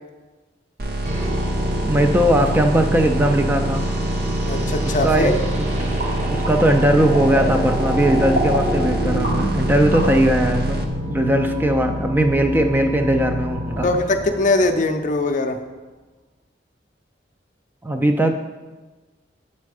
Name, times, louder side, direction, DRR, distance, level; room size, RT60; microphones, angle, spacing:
sound 1, 0.8-10.8, right 1 dB, 55° right, 0.7 m, -26 dB
sound 2, 1.0-15.1, equal, 40° right, 1.0 m, -27 dB
voice 1, 1.8-3.8 5.0-5.7 6.3-10.8 11.1-13.9 17.8-18.4, right 1 dB, 10° right, 5 dB, 0.3 m, -19 dB
voice 2, 4.5-5.4 13.8-15.6, left 2 dB, 45° left, 7 dB, 0.5 m, -21 dB
sound 3, 5.7-10.7, right 1 dB, 85° right, 2.1 m, -30 dB
7.5 x 4.3 x 4.8 m, 1.2 s
head